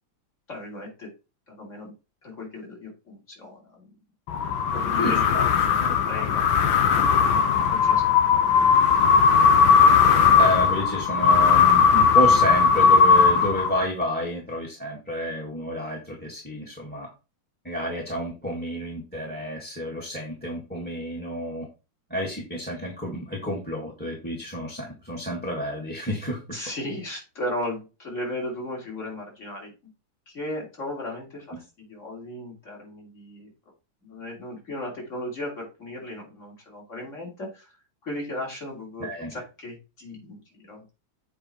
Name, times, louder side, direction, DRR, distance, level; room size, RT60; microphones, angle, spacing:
voice 1, 0.5-1.1 1.5-1.9 2.2-4.0 4.7-6.5 6.7-8.5 26.5-29.7 30.3-33.5 34.0-37.8 38.0-40.8, left 1 dB, 40° left, -1 dB, 3.3 m, -36 dB
sound 1, 4.3-14.0, left 6 dB, 85° left, 1.7 m, -18 dB
voice 2, 5.0-5.4 5.8-6.2 10.3-17.1 17.6-21.7 22.1-26.6 39.0-39.3, equal, 5° left, 0 dB, 1.7 m, -30 dB
7.7 x 4.8 x 4.4 m, 0.29 s
omnidirectional pair, 2.1 m